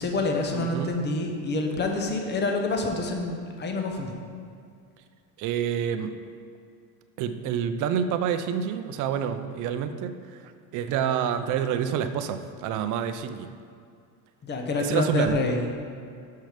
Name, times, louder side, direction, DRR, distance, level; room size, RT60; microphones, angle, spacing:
voice 1, 0.0-4.1 14.4-15.6, left 2 dB, 25° left, 3 dB, 0.9 m, -27 dB
voice 2, 0.5-1.0 5.4-6.2 7.2-13.5 14.8-15.4, right 8 dB, 45° right, 9 dB, 0.5 m, -28 dB
6.3 x 5.7 x 5.1 m, 2.3 s
cardioid pair, 135°, 42 cm